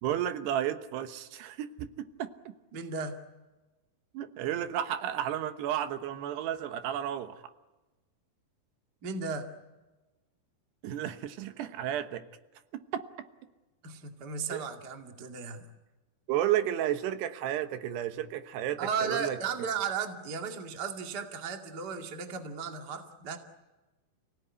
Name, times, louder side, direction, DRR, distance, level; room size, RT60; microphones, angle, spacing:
voice 1, 0.0-2.3 4.1-7.4 10.8-12.2 12.9-13.0 14.5-14.7 16.3-19.4, right 11 dB, 80° right, 9 dB, 3.3 m, -32 dB
voice 2, 2.7-3.2 9.0-9.5 13.8-15.7 18.8-23.4, right 5 dB, 35° right, 4 dB, 2.0 m, -35 dB
29.5 x 17.5 x 9.6 m, 1.1 s
omnidirectional pair, 4.8 m